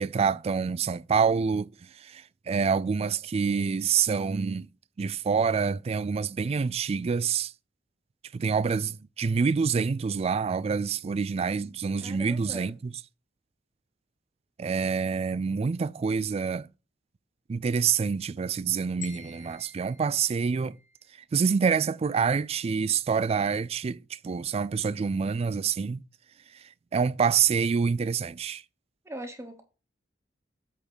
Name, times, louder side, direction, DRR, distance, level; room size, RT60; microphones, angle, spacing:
voice 1, 0.0-1.7 2.0-4.7 5.0-7.5 8.3-12.9 14.6-16.7 17.5-20.8 21.3-26.0 26.9-28.6, right 6 dB, 35° right, 0.3 m, -27 dB
voice 2, 11.9-12.7 29.1-29.6, right 1 dB, 15° right, 0.9 m, -40 dB
sound 1, 19.0-21.2, left 7 dB, 40° left, 1.0 m, -48 dB
8.3 x 3.6 x 6.2 m
head